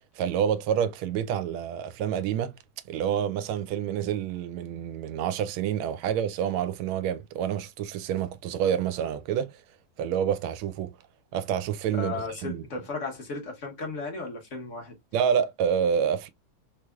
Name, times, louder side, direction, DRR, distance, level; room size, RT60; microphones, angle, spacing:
voice 1, 0.2-2.5 2.9-9.5 10.0-10.9 11.3-12.6 15.1-16.3, right 8 dB, 85° right, 1.4 m, -28 dB
voice 2, 11.9-14.9, left 3 dB, 50° left, 1.0 m, -35 dB
3.5 x 3.2 x 2.3 m
omnidirectional pair, 2.3 m